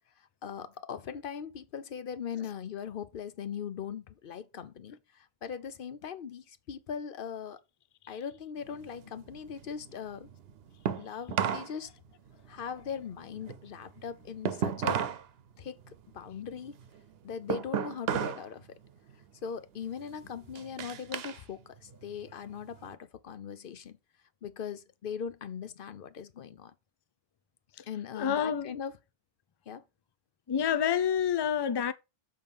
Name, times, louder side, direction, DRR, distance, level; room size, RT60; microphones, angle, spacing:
voice 1, 0.2-7.6 8.1-10.3 10.9-11.9 12.5-15.0 15.6-16.8 17.2-18.7 19.4-24.0 24.4-26.7 27.9-28.9 29.7-29.8, left 7 dB, 60° left, 0.8 m, -40 dB
sound 1, 8.6-11.7 12.0-15.3 15.6-18.5 18.8-19.2 19.8-21.4 21.8-22.9, right 8 dB, 75° right, 0.9 m, -35 dB
voice 2, 28.1-28.8 30.5-31.9, left 8 dB, 40° left, 0.4 m, -28 dB
7.1 x 3.8 x 5.2 m
omnidirectional pair, 1.0 m